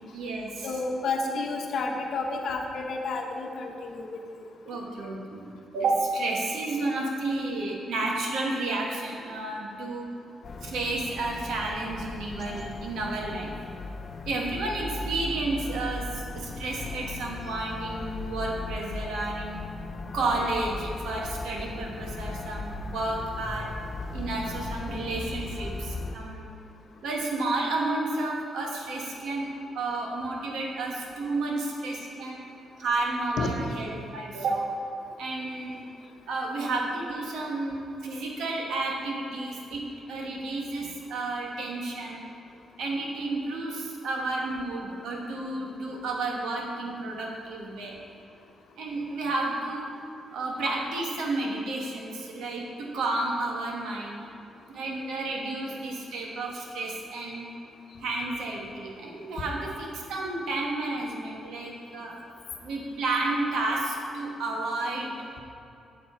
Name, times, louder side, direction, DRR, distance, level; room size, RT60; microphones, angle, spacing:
voice 1, 0.1-0.7 4.6-10.1 10.6-13.6 14.2-19.7 20.1-23.7 24.1-26.5 27.0-29.5 29.7-32.4 32.8-34.7 35.2-35.8 36.3-42.2 42.8-48.0 48.8-49.9 50.3-54.2 54.7-57.5 58.0-62.1 62.6-65.4, right 2 dB, 85° right, -1 dB, 1.4 m, -31 dB
voice 2, 0.6-4.1 33.4-33.5, left 3 dB, 65° left, 3 dB, 0.9 m, -30 dB
sound 1, 10.4-26.2, left 3 dB, 40° left, 0.4 m, -37 dB
7.5 x 7.2 x 4.4 m, 2.6 s
cardioid pair, 125°, 0 cm